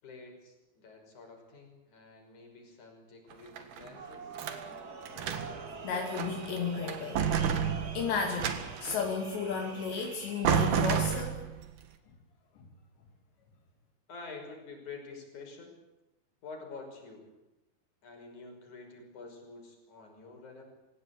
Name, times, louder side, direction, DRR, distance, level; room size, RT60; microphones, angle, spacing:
voice 1, 0.0-4.4 14.1-15.8 16.4-17.3 18.0-20.6, left 4 dB, 45° left, 3 dB, 7.0 m, -48 dB
sound 1, 3.3-4.6 5.1-5.7 6.1-6.6 6.9-9.1 10.0-10.1 10.4-11.6, right 7 dB, 60° right, 3.3 m, -31 dB
sound 2, 3.9-11.2, right 4 dB, 35° right, 1.5 m, -46 dB
voice 2, 5.8-7.6 7.9-11.4, left 5 dB, 75° left, 2 dB, 4.7 m, -34 dB
26.5 x 17.5 x 8.6 m, 0.93 s
omnidirectional pair, 5.0 m